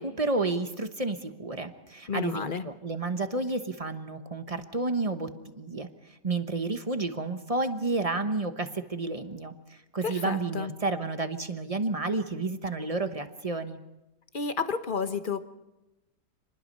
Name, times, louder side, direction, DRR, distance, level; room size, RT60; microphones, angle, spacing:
voice 1, 0.0-5.3 5.6-5.9 6.2-13.8, right 3 dB, 25° right, 8 dB, 1.0 m, -31 dB
voice 2, 2.1-2.7 10.0-10.7 14.3-15.4, left 5 dB, 35° left, 10 dB, 0.9 m, -31 dB
27.0 x 20.5 x 5.5 m, 0.97 s
omnidirectional pair, 1.8 m